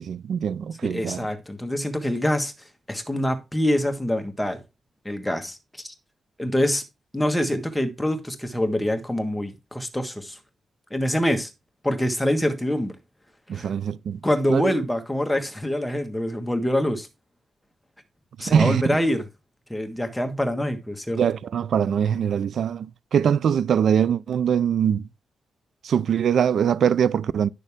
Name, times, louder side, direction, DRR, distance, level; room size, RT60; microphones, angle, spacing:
voice 1, 0.0-1.3 13.5-14.2 14.5-14.7 18.5-19.0 21.2-25.1 25.8-27.5, right 8 dB, 65° right, 0.4 m, -22 dB
voice 2, 0.8-2.5 2.9-4.6 5.0-5.6 5.8-5.9 6.4-6.8 7.1-10.4 10.9-11.5 11.8-12.9 13.5-13.7 14.2-17.1 18.4-19.2 19.7-21.2, left 1 dB, 5° left, 1.5 m, -25 dB
11.0 x 6.6 x 3.5 m
wide cardioid pair, 150°, 0 cm